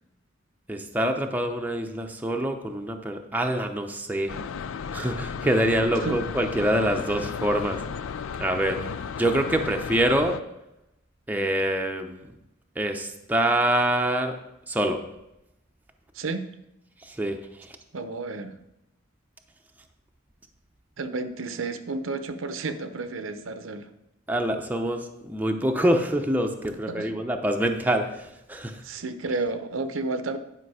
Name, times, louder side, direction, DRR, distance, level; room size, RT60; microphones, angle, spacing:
voice 1, 0.7-4.3 4.9-7.8 8.4-8.8 9.2-10.4 11.3-12.2 12.8-14.3 14.7-15.0 17.0-17.4 24.3-28.8, right 1 dB, 10° right, 4 dB, 0.6 m, -25 dB
sound 1, 4.3-10.4, left 6 dB, 85° left, 0.4 m, -34 dB
voice 2, 16.1-16.5 17.9-18.6 21.0-23.9 26.9-27.1 28.8-30.4, right 3 dB, 85° right, 10 dB, 0.7 m, -31 dB
10.0 x 5.2 x 4.8 m, 0.88 s
head